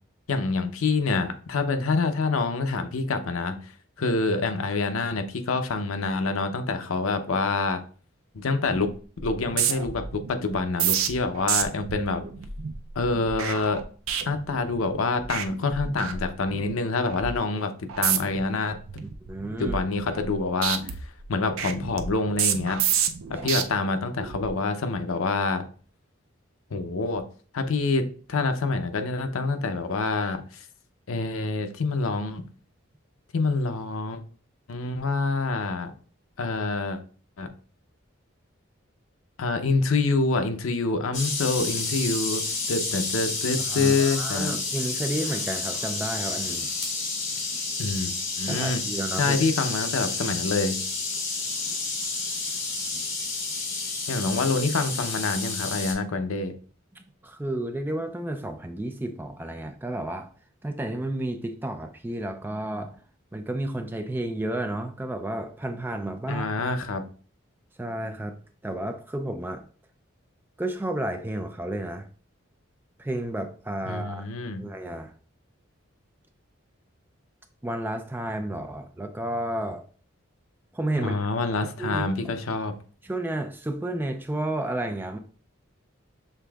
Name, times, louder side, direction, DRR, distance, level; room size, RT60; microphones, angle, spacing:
voice 1, 0.3-3.7 4.0-7.8 8.3-8.9 9.2-12.2 13.0-13.8 14.3-18.8 19.6-20.8 21.3-22.8 23.3-25.7 26.7-27.2 27.5-28.0 28.3-30.6 31.1-32.4 33.3-34.2 34.7-35.9 36.4-37.0 37.4-37.5 39.4-42.4 42.7-44.5 47.8-48.8 49.2-50.8 54.1-56.5 66.3-67.0 73.9-74.6 81.0-82.7, left 3 dB, 85° left, 0.6 m, -26 dB
sound 1, 8.6-8.9 9.2-14.9 15.2-15.5 15.7-16.7 17.1-17.4 17.9-18.4 18.9-20.4 20.6-23.6 24.2-24.5, right 8 dB, 85° right, 0.5 m, -29 dB
voice 2, 19.3-19.8 23.3-23.6 43.6-46.7 48.5-49.4 52.9-53.1 56.9-60.3 60.6-63.0 63.3-66.5 67.8-68.4 68.6-69.6 70.6-72.1 73.0-74.3 74.6-75.1 77.6-79.9 80.7-81.2 81.5-82.1 83.0-85.2, right 1 dB, 10° right, 0.3 m, -32 dB
sound 2, 41.1-55.9, left 3 dB, 65° left, 1.7 m, -30 dB
6.7 x 3.4 x 2.3 m
head